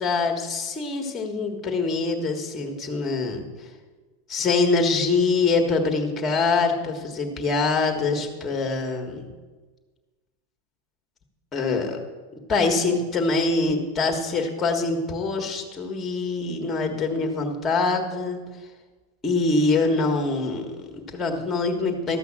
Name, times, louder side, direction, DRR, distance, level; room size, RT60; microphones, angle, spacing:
voice 1, 0.0-3.4 4.3-9.2 11.5-12.0 12.3-18.4 19.2-22.2, left 3 dB, 15° left, 3 dB, 1.6 m, -24 dB
13.5 x 5.6 x 7.4 m, 1.3 s
supercardioid pair, 150°, 0 cm